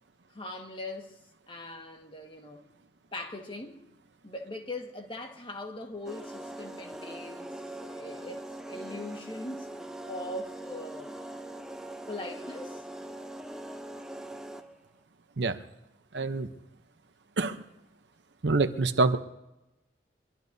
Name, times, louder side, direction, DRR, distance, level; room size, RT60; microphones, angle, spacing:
voice 1, 0.3-1.2 1.5-2.7 3.1-3.8 4.2-7.5 7.8-9.7 10.0-12.8, left 1 dB, 30° left, 1.6 m, -41 dB
sound 1, 6.0-14.8, right 1 dB, 5° right, 0.7 m, -42 dB
voice 2, 16.1-16.5 17.4-17.6 18.4-19.2, right 3 dB, 80° right, 0.8 m, -26 dB
23.0 x 23.0 x 2.7 m
head